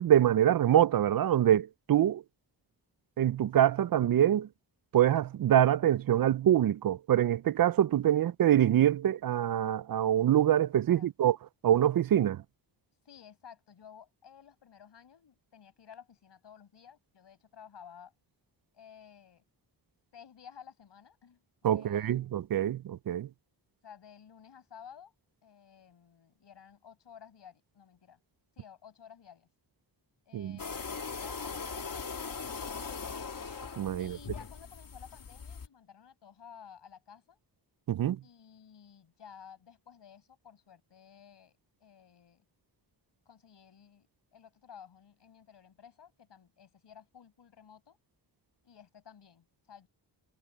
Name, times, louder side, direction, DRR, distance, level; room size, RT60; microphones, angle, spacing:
voice 1, 0.0-2.2 3.2-4.5 4.9-11.4 11.6-12.4 21.6-23.3 30.3-30.6 33.8-34.2 37.9-38.2, right 11 dB, 55° right, 0.5 m, -25 dB
voice 2, 8.0-8.3 10.9-11.1 13.0-18.1 18.7-19.4 20.1-21.4 21.7-22.4 23.8-25.1 25.4-28.2 28.6-29.5 30.3-33.0 34.0-37.4 38.2-42.5 43.3-48.0 48.6-49.9, left 8 dB, 75° left, 5.8 m, -54 dB
sound 1, 30.6-35.7, left 5 dB, 50° left, 3.0 m, -40 dB
wide cardioid pair, 135°, 43 cm